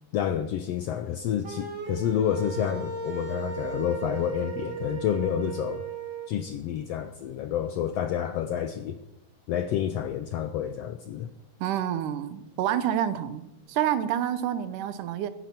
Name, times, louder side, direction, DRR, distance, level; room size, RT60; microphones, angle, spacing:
voice 1, 0.1-5.8 6.3-9.0 9.5-11.3, left 10 dB, 80° left, 10 dB, 1.4 m, -29 dB
sound 1, 1.4-6.3, right 6 dB, 25° right, 1.6 m, -36 dB
voice 2, 11.6-15.3, right 10 dB, 85° right, 13 dB, 2.5 m, -28 dB
14.5 x 10.0 x 7.6 m, 0.92 s
omnidirectional pair, 3.6 m